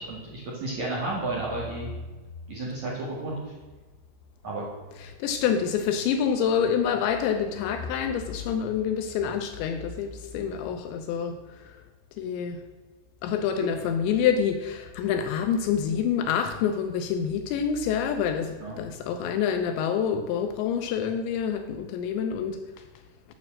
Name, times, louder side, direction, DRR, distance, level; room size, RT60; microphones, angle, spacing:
voice 1, 0.0-1.9 2.5-3.3 4.4-4.7 13.6-13.7 18.6-18.8, right 2 dB, 55° right, 2.2 m, -32 dB
voice 2, 5.2-11.4 12.2-12.6 13.2-22.6, left 7 dB, 80° left, 2.7 m, -27 dB
9.2 x 6.4 x 7.4 m
omnidirectional pair, 5.6 m